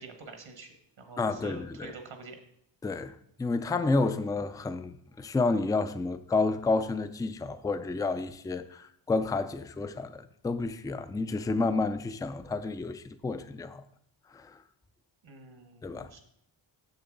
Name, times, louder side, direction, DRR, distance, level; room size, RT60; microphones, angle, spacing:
voice 1, 0.0-2.4 15.2-16.2, right 4 dB, 75° right, 1.3 m, -47 dB
voice 2, 1.2-1.9 2.8-3.1 3.4-13.8 14.3-14.5 15.8-16.1, left 3 dB, 10° left, 0.3 m, -30 dB
6.9 x 6.8 x 3.8 m
wide cardioid pair, 80°, 47 cm